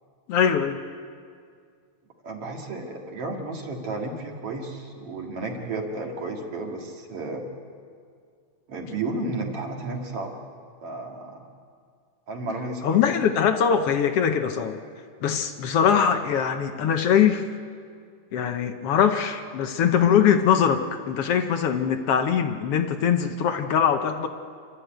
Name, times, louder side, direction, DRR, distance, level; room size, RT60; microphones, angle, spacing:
voice 1, 0.3-0.8 12.8-14.8 15.2-17.5 18.3-24.3, left 8 dB, 70° left, 6 dB, 1.5 m, -22 dB
voice 2, 2.2-7.4 8.7-10.4 10.8-11.4 12.3-13.3, right 2 dB, 50° right, 1 dB, 3.0 m, -33 dB
29.0 x 13.0 x 9.0 m, 2.2 s
omnidirectional pair, 3.6 m